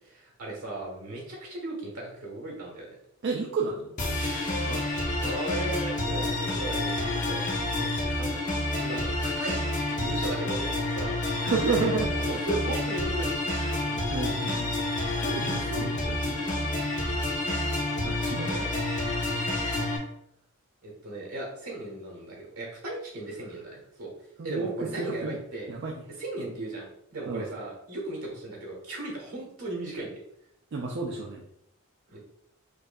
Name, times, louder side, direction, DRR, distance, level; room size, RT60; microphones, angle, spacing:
voice 1, 0.0-3.0 5.2-8.4 8.8-11.1 12.1-13.3 18.5-18.7 20.8-24.1 24.4-25.7 26.2-30.2 32.1-32.2, right 2 dB, 80° right, -1 dB, 1.3 m, -37 dB
voice 2, 3.2-3.9 4.7-4.9 11.4-12.3 13.7-13.8 14.1-14.7 15.2-16.4 17.7-17.8 18.0-18.7 24.4-25.4 25.7-25.9 27.3-27.5 30.7-31.4, right 4 dB, 50° right, -1 dB, 0.4 m, -31 dB
sound 1, 4.0-20.0, left 2 dB, 35° left, 0.8 m, -29 dB
4.6 x 2.6 x 2.3 m, 0.75 s
head